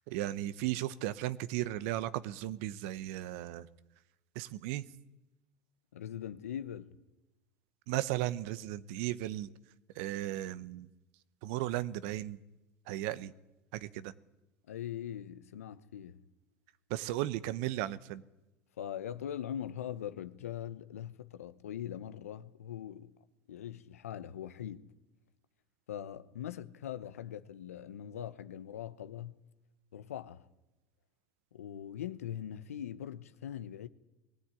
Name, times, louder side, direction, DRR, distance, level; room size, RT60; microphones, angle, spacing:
voice 1, 0.1-3.7 4.3-4.8 7.9-9.5 10.0-10.9 11.4-12.4 12.9-13.3 13.7-14.1 16.9-18.2, right 15 dB, 70° right, 1.0 m, -35 dB
voice 2, 5.9-6.9 14.7-16.2 18.8-23.1 23.5-24.9 25.9-29.4 29.9-30.5 31.5-33.9, left 10 dB, 90° left, 1.0 m, -41 dB
20.5 x 15.5 x 9.8 m
hypercardioid pair, 85°, 8 cm